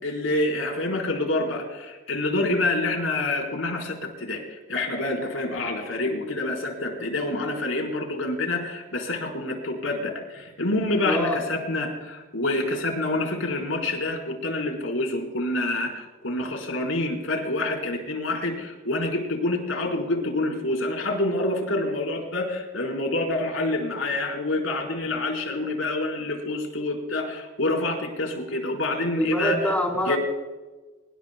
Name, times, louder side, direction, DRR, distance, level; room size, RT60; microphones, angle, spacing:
voice 1, 0.0-29.7 30.0-30.2, left 2 dB, 85° left, 1 dB, 4.4 m, -27 dB
voice 2, 11.0-11.4 29.2-30.2, equal, 5° left, 0 dB, 4.1 m, -24 dB
25.5 x 22.0 x 2.3 m, 1.2 s
head